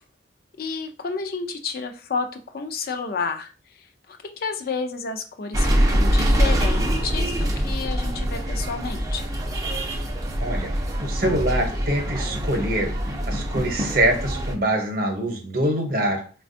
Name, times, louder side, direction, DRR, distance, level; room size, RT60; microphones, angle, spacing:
voice 1, 0.6-9.3, left 4 dB, 55° left, 6 dB, 0.4 m, -31 dB
sound 1, 5.5-14.5, equal, 20° right, 0.4 m, -24 dB
voice 2, 10.4-10.7 11.0-12.9 13.3-16.2, right 1 dB, 55° right, 4 dB, 0.8 m, -24 dB
4.1 x 2.2 x 2.5 m, 0.37 s
head